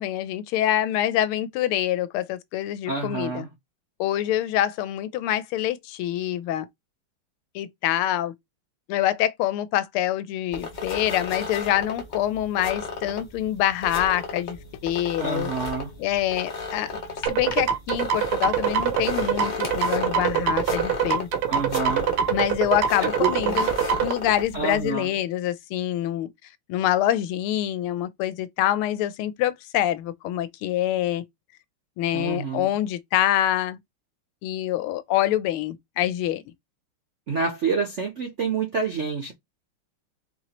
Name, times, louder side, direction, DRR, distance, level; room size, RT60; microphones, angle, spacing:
voice 1, 0.0-3.4 4.0-6.7 7.5-8.3 8.9-14.6 14.8-15.5 16.0-17.0 17.3-21.3 22.3-23.7 24.0-26.3 26.7-31.2 32.0-33.8 34.4-36.4, left 12 dB, 80° left, 1.4 m, -25 dB
voice 2, 2.9-3.5 15.2-15.9 21.5-22.1 23.0-23.6 24.5-25.1 32.1-32.7 37.3-39.3, right 5 dB, 60° right, 0.7 m, -28 dB
sound 1, 10.5-24.9, left 3 dB, 60° left, 0.4 m, -34 dB
sound 2, 17.3-24.1, right 8 dB, 80° right, 1.6 m, -24 dB
4.5 x 2.9 x 2.9 m
omnidirectional pair, 2.4 m